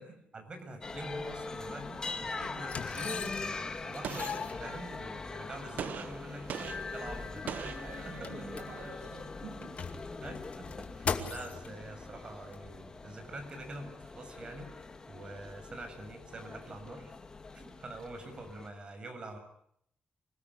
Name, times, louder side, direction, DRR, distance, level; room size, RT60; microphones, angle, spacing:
voice 1, 0.3-6.4 6.9-7.8 8.2-8.3 10.2-17.1 17.5-19.4, right 1 dB, 30° right, 6 dB, 6.9 m, -45 dB
sound 1, 0.8-18.7, left 3 dB, 25° left, 2.3 m, -42 dB
sound 2, 1.8-1.9 2.6-3.6 3.9-5.3 6.0-6.1 6.4-6.5 6.9-9.1 9.5-11.7 12.5-12.6, left 6 dB, 45° left, 2.4 m, -40 dB
Gunshot gunfire, 4.0-5.1 5.8-8.6, right 8 dB, 65° right, 1.2 m, -42 dB
voice 2, 7.8-9.9, right 5 dB, 85° right, 1 dB, 7.6 m, -48 dB
26.5 x 19.0 x 10.0 m, 0.71 s
wide cardioid pair, 145°, 3 cm